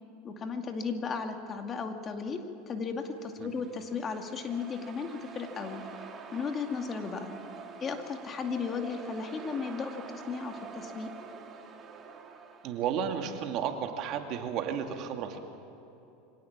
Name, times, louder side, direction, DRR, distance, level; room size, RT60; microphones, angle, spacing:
voice 1, 0.2-5.8 6.3-7.3 7.8-11.1, left 5 dB, 30° left, 5 dB, 2.3 m, -35 dB
sound 1, 3.2-13.1, right 5 dB, 30° right, 2.5 m, -47 dB
voice 2, 12.6-15.4, right 8 dB, 50° right, 5 dB, 2.3 m, -33 dB
24.5 x 18.0 x 7.4 m, 3.0 s
supercardioid pair, 110°, 0 cm